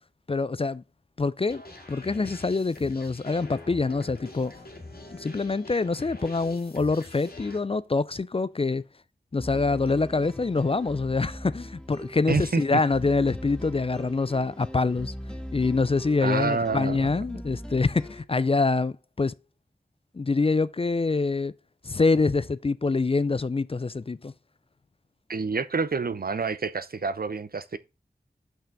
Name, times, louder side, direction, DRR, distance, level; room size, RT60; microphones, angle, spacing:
voice 1, 0.3-0.8 1.2-1.6 1.9-4.5 5.1-8.9 9.3-15.1 15.5-19.3 20.1-21.5 21.8-24.3, left 3 dB, 35° left, 0.4 m, -25 dB
sound 1, 1.5-7.6, left 2 dB, 65° left, 1.9 m, -44 dB
sound 2, 9.4-18.2, equal, 5° left, 1.0 m, -40 dB
voice 2, 12.3-12.6 16.2-17.0 25.3-27.8, right 4 dB, 60° right, 0.7 m, -27 dB
5.8 x 5.6 x 5.1 m
wide cardioid pair, 45°, 17 cm